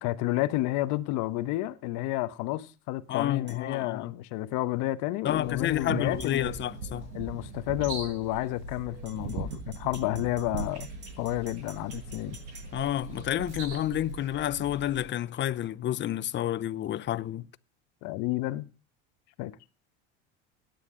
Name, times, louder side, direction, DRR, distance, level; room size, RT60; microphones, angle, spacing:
voice 1, 0.0-6.5 7.1-10.9 11.2-12.4 18.0-18.7 19.4-19.5, left 17 dB, 60° left, 1.1 m, -30 dB
voice 2, 3.1-4.1 5.2-7.1 12.7-17.5, left 12 dB, 35° left, 0.7 m, -30 dB
sound 1, 3.5-3.6 6.2-6.4 9.1-12.7, right 4 dB, 35° right, 5.3 m, -50 dB
sound 2, 5.3-15.0, right 4 dB, 85° right, 6.7 m, -40 dB
17.0 x 9.8 x 3.8 m
supercardioid pair, 100°, 34 cm